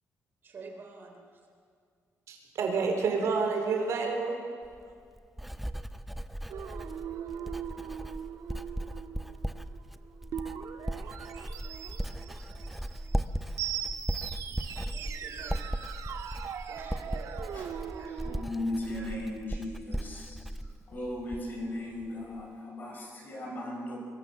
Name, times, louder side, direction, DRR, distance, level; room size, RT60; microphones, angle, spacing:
voice 1, 0.4-1.2 14.9-15.8 16.7-17.6, right 3 dB, 40° right, 3 dB, 3.5 m, -48 dB
voice 2, 2.3-4.4, right 4 dB, 65° right, 3 dB, 4.0 m, -29 dB
Writing, 4.6-21.7 22.0-22.4, right 1 dB, ahead, 0.6 m, -37 dB
sound 1, 6.5-18.4, right 9 dB, 80° right, 1.6 m, -40 dB
voice 3, 17.5-24.0, left 1 dB, 35° left, 1 dB, 5.5 m, -37 dB
23.0 x 22.5 x 7.1 m, 2.2 s
cardioid pair, 175°, 5 cm